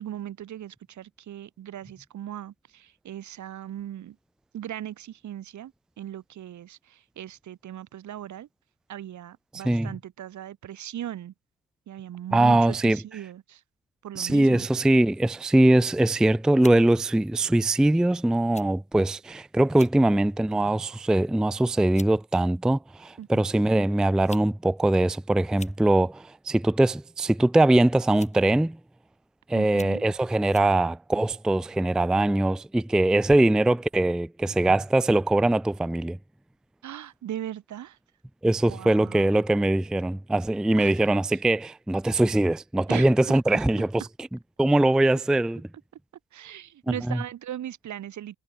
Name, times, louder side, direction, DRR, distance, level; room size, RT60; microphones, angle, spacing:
voice 1, 0.0-4.2 4.5-5.7 6.0-8.5 8.9-11.3 11.9-13.6 14.0-14.7 23.2-23.4 29.5-30.0 36.8-38.0 38.6-39.4 40.8-40.9 42.9-43.6 46.3-48.4, right 11 dB, 70° right, 6.9 m, -38 dB
voice 2, 9.5-9.9 12.3-13.0 14.2-28.8 29.5-36.2 38.4-44.3 44.6-45.7 47.1-47.2, right 1 dB, ahead, 0.4 m, -22 dB
sound 1, 15.9-16.2 16.6-16.8 17.7-17.9 18.5-18.7 19.0-19.1 19.7-20.0 20.5-20.8 21.5-21.6 22.0-22.2 23.2-23.3 24.1-24.5 24.8-24.9 25.4-25.8 27.0-27.3 28.1-28.5 29.1-29.2 29.7-30.0 30.5-30.7, left 3 dB, 20° left, 5.7 m, -46 dB
cardioid pair, 90°, 30 cm